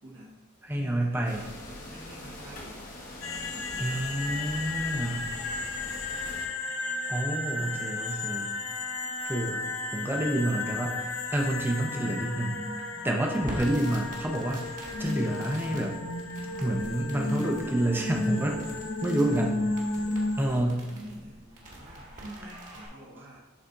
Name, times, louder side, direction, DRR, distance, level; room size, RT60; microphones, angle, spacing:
voice 1, 0.0-0.4 0.7-2.8 3.3-4.1 5.6-6.1 19.9-23.4, right 1 dB, 65° right, -8 dB, 1.5 m, -48 dB
voice 2, 0.6-1.5 3.8-5.3 7.1-8.6 9.3-9.7 9.9-12.6 13.0-16.0 16.6-18.7 19.0-19.7 20.4-20.8, right 1 dB, 10° right, 1 dB, 0.7 m, -29 dB
sound 1, 1.3-6.5, left 1 dB, 40° left, 1.2 m, -43 dB
sound 2, 3.2-20.6, left 2 dB, 85° left, 0.7 m, -33 dB
Crackle, 13.4-22.9, right 1 dB, 40° right, 1.5 m, -46 dB
11.0 x 4.2 x 2.6 m, 1.2 s
head